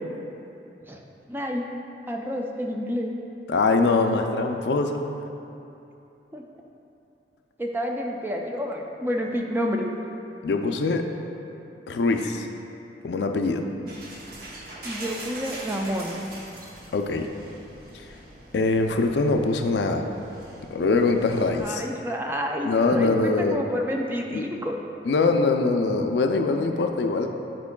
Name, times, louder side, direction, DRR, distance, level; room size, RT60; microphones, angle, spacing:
voice 1, 1.3-1.7 2.1-3.1 6.3-6.5 7.6-9.9 13.8-14.0 14.8-16.2 21.4-24.7, equal, 10° right, 1 dB, 0.4 m, -29 dB
voice 2, 3.5-5.0 10.4-11.0 11.9-12.5 13.0-13.6 16.9-17.3 17.9-18.0 18.5-20.0 20.7-21.8 22.6-23.6 24.3-24.4 25.1-27.3, left 3 dB, 70° left, 5 dB, 0.4 m, -23 dB
sound 1, 13.9-21.6, right 2 dB, 55° right, 0.8 m, -42 dB
9.5 x 4.5 x 2.2 m, 2.8 s
head